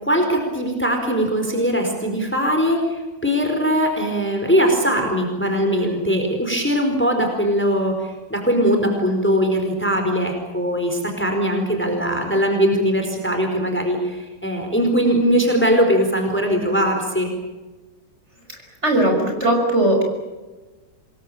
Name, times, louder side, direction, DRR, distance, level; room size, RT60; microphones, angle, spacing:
voice 1, 0.0-17.3, equal, 5° left, 4 dB, 4.5 m, -20 dB
voice 2, 18.8-20.0, right 1 dB, 35° right, 2 dB, 6.4 m, -18 dB
27.0 x 21.5 x 8.8 m, 1.2 s
omnidirectional pair, 1.9 m